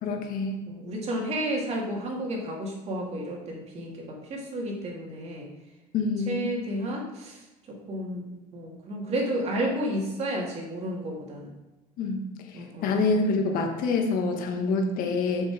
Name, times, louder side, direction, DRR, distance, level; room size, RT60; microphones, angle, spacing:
voice 1, 0.0-0.7 5.9-6.5 12.0-12.2 12.5-15.5, left 3 dB, 55° left, 4 dB, 1.6 m, -26 dB
voice 2, 0.7-5.5 6.2-11.5 12.5-12.9, right 1 dB, 40° right, -1 dB, 2.6 m, -32 dB
7.6 x 6.2 x 4.9 m, 1.1 s
cardioid pair, 120°, 17 cm